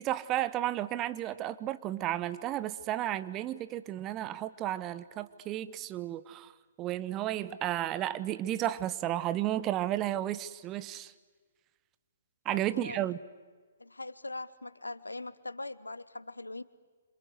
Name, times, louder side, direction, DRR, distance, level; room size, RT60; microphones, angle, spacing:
voice 1, 0.0-6.5 6.8-11.1 12.4-13.2, right 13 dB, 25° right, 14 dB, 0.9 m, -33 dB
voice 2, 12.5-13.0 13.8-16.6, left 2 dB, 80° left, 17 dB, 1.0 m, -41 dB
27.0 x 27.0 x 8.1 m, 1.5 s
figure-of-eight pair, 125°, 0 cm